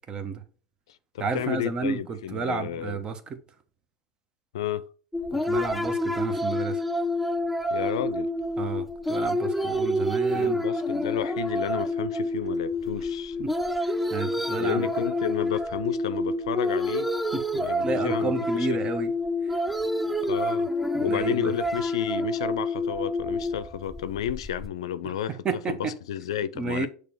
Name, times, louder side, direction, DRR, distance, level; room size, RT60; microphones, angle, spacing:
voice 1, 0.1-0.4 1.2-3.2 5.3-6.8 8.6-10.6 13.4-13.5 13.8-14.9 17.3-19.1 19.4-19.5 20.9-21.5 25.4-25.9 26.5-26.9, right 4 dB, 30° right, 1.1 m, -31 dB
voice 2, 0.9-3.0 4.5-4.9 7.7-8.3 10.3-13.4 14.6-17.1 17.5-18.8 20.2-20.7 21.0-26.9, left 10 dB, 75° left, 0.4 m, -32 dB
sound 1, 5.1-24.7, left 1 dB, ahead, 0.5 m, -28 dB
6.8 x 3.3 x 4.6 m
hypercardioid pair, 90°, 3 cm